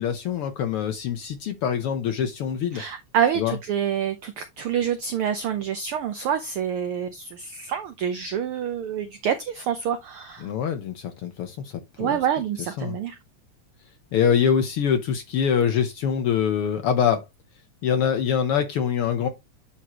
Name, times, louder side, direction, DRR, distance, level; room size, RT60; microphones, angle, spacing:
voice 1, 0.0-2.8 3.4-3.6 10.4-11.7 12.0-12.2 12.8-13.0 14.1-17.2 17.8-19.3, left 8 dB, 70° left, 1.4 m, -24 dB
voice 2, 2.7-10.5 12.0-13.2, right 8 dB, 90° right, 1.2 m, -27 dB
10.5 x 4.4 x 2.9 m
omnidirectional pair, 3.3 m